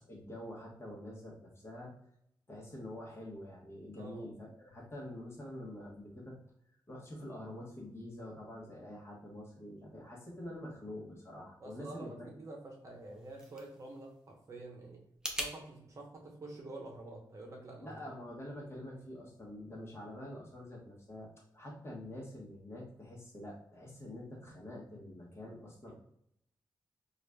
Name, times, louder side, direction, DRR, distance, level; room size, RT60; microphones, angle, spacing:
voice 1, 0.0-1.9 2.5-6.4 6.9-12.3 17.8-25.9, left 1 dB, 35° left, -3 dB, 1.0 m, -46 dB
voice 2, 4.0-4.3 11.6-15.0 15.3-18.0 25.9-26.0, right 2 dB, 40° right, 0 dB, 0.8 m, -48 dB
sound 1, 12.9-15.5, right 1 dB, 10° right, 0.5 m, -43 dB
4.7 x 2.4 x 2.2 m, 0.72 s
wide cardioid pair, 130°, 8 cm